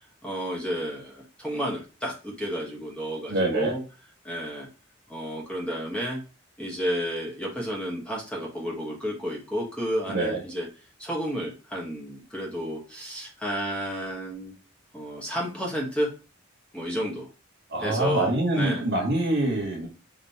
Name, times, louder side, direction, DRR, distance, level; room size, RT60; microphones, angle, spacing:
voice 1, 0.2-3.8 4.2-4.7 5.1-6.2 6.6-10.7 11.0-14.5 14.9-16.1 16.7-17.3 17.8-18.8, equal, 5° left, -3 dB, 1.0 m, -31 dB
voice 2, 3.3-3.8 10.1-10.4 17.7-19.9, right 2 dB, 55° right, 1 dB, 1.3 m, -25 dB
5.2 x 2.9 x 2.7 m, 0.33 s
head